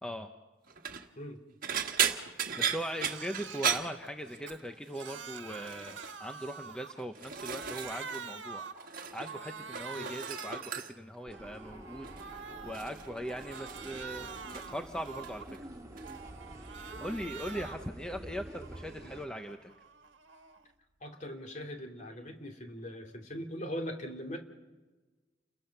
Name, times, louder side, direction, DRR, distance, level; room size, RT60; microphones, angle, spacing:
voice 1, 0.0-0.3 2.2-8.7 9.1-15.6 16.7-19.7 22.1-22.3, equal, 5° left, 5 dB, 0.9 m, -40 dB
sound 1, 0.7-1.1 1.6-4.7 4.9-5.3 5.6-6.2 6.8-8.2 8.5-9.4 9.6-11.2 12.0-12.3 12.7-14.8 15.1-15.6 16.0-16.2 17.4-17.5, right 8 dB, 50° right, 1.5 m, -36 dB
Crying sobbing, 2.1-2.3 2.6-3.8 4.3-7.1 7.3-8.9 9.2-10.8 11.2-12.9 13.3-15.6 16.0-17.9 18.3-20.7, right 5 dB, 80° right, 1.5 m, -46 dB
sound 2, 11.3-19.3, right 1 dB, 20° right, 2.4 m, -48 dB
voice 2, 21.0-24.4, equal, 40° left, 5 dB, 2.7 m, -41 dB
29.5 x 21.5 x 5.9 m, 1.3 s
head